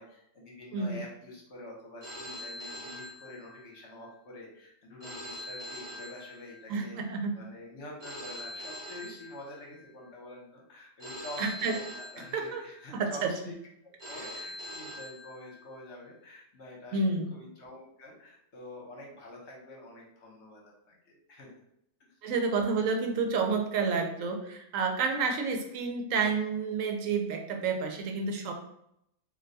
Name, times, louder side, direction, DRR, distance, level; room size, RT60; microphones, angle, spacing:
voice 1, 0.0-13.5 13.8-20.6 20.9-21.5, left 1 dB, 60° left, -2 dB, 1.1 m, -47 dB
Telephone, 2.0-3.9 5.0-6.9 8.0-9.9 11.0-12.9 14.0-15.9, left 1 dB, 40° right, 0.6 m, -43 dB
voice 2, 6.7-7.3 11.4-11.8 12.3-12.6 12.9-13.3 16.9-17.3 22.2-28.5, right 4 dB, 85° right, 3 dB, 1.0 m, -29 dB
2.5 x 2.2 x 3.9 m, 0.76 s
omnidirectional pair, 1.3 m